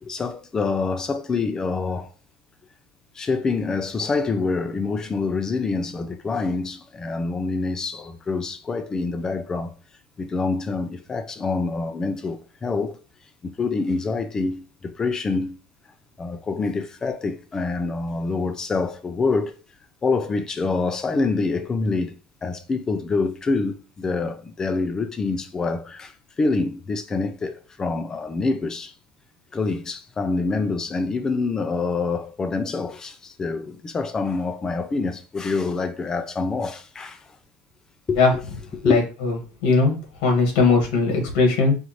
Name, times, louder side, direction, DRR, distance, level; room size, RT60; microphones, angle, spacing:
voice 1, 0.0-2.1 3.1-9.7 10.2-13.0 13.4-15.6 16.2-19.5 20.0-28.9 29.5-37.3 38.1-38.4 38.7-39.0, left 4 dB, 15° left, 0.4 m, -26 dB
voice 2, 38.8-39.3 39.6-40.0 40.2-41.7, left 4 dB, 80° left, 1.8 m, -19 dB
5.0 x 2.7 x 3.0 m
cardioid pair, 165°, 4 cm